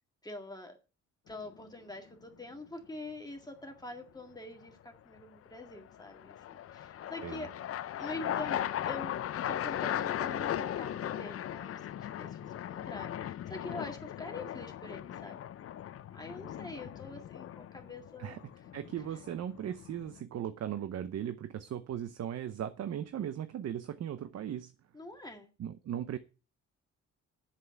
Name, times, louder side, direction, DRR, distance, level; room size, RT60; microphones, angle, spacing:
voice 1, 0.2-0.8 1.3-7.5 7.8-9.2 9.5-15.4 16.1-18.4 24.9-25.5, left 2 dB, 15° left, 1.9 m, -45 dB
sound 1, 1.3-1.8 5.6-20.2, left 11 dB, 50° left, 0.6 m, -38 dB
voice 2, 18.7-24.7 25.6-26.2, right 10 dB, 55° right, 0.8 m, -38 dB
7.9 x 7.7 x 7.0 m
cardioid pair, 90°, 30 cm